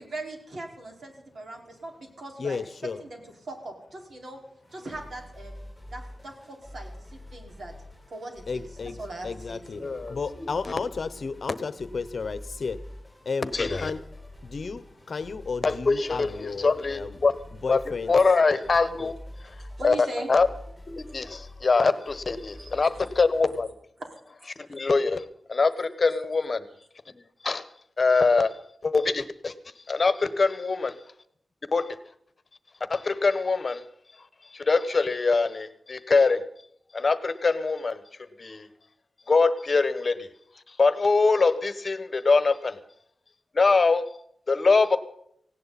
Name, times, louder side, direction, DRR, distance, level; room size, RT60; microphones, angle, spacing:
voice 1, 0.0-2.6 3.0-4.4 4.7-5.6 5.9-7.7 8.1-10.0 19.8-20.3 22.6-23.1 24.0-24.2 24.6-24.8, right 2 dB, 60° right, 4.8 m, -40 dB
voice 2, 2.4-3.0 8.5-9.0 9.2-12.8 13.2-14.0 14.4-17.2 17.5-18.1 19.0-19.1, left 4 dB, 60° left, 0.9 m, -33 dB
sound 1, 4.6-23.6, left 1 dB, 5° right, 7.9 m, -46 dB
voice 3, 9.8-10.5 13.5-13.9 15.6-17.3 17.7-19.2 19.8-20.0 20.3-20.5 20.9-23.7 24.7-26.6 27.4-27.6 28.0-28.5 28.8-29.5 29.9-30.9 31.7-32.0 32.9-33.8 34.5-36.4 36.9-38.0 38.4-38.7 39.3-40.3 40.7-42.8 43.5-44.1 44.5-45.0, left 4 dB, 40° left, 1.2 m, -23 dB
18.5 x 17.0 x 4.2 m
wide cardioid pair, 145°, 0 cm